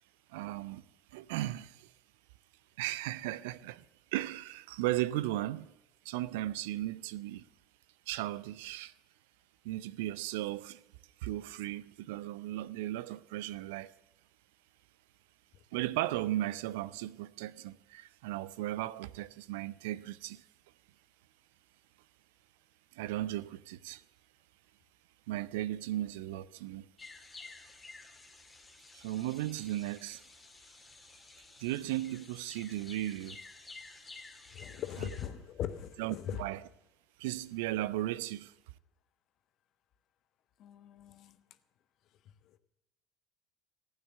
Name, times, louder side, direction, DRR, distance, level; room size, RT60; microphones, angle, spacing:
voice 1, 0.3-1.9 2.8-3.8 4.1-5.7 6.0-7.5 8.1-8.9 9.6-10.8 11.2-13.9 15.7-20.4 22.9-24.0 25.3-26.9 28.9-30.2 31.6-33.4 36.0-36.6 37.2-38.5, right 15 dB, 70° right, 0.5 m, -36 dB
sound 1, 27.0-35.3, left 3 dB, 20° left, 2.1 m, -52 dB
voice 2, 34.5-36.4 40.6-41.4 42.4-42.6, left 10 dB, 50° left, 1.1 m, -40 dB
15.5 x 9.0 x 7.8 m
figure-of-eight pair, 70°, 0 cm